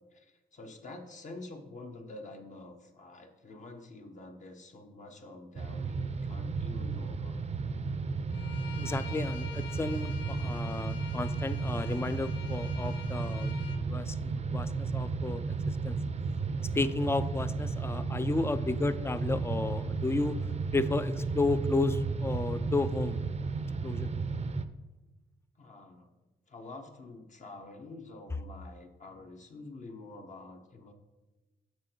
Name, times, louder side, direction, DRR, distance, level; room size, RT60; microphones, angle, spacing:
voice 1, 0.1-7.4 25.6-26.2 26.5-30.9, left 2 dB, 45° left, 3 dB, 1.3 m, -47 dB
sound 1, 5.6-24.6, right 4 dB, 40° right, 0.6 m, -33 dB
Bowed string instrument, 8.3-13.8, left 8 dB, 90° left, 0.6 m, -47 dB
voice 2, 8.8-13.5 13.8-16.0 16.6-23.2 23.8-24.3, left 3 dB, 15° left, 13 dB, 0.5 m, -33 dB
6.9 x 6.2 x 4.5 m, 1.1 s
cardioid pair, 75°, 17 cm